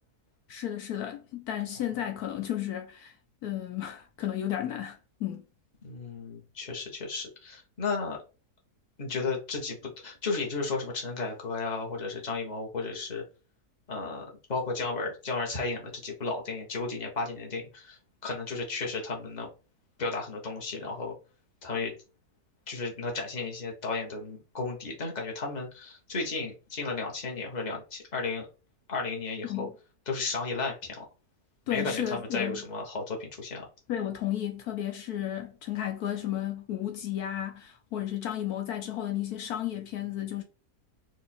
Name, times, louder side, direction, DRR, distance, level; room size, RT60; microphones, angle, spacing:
voice 1, 0.5-3.1 3.4-5.4 29.4-29.7 31.7-32.6 33.9-40.4, left 11 dB, 75° left, 1.2 m, -33 dB
voice 2, 5.8-8.2 9.0-13.2 13.9-19.5 20.0-21.1 21.6-21.9 22.7-28.5 28.9-29.7 30.1-31.0 31.7-33.6, left 3 dB, 30° left, 1.3 m, -34 dB
4.7 x 2.7 x 4.3 m
omnidirectional pair, 1.7 m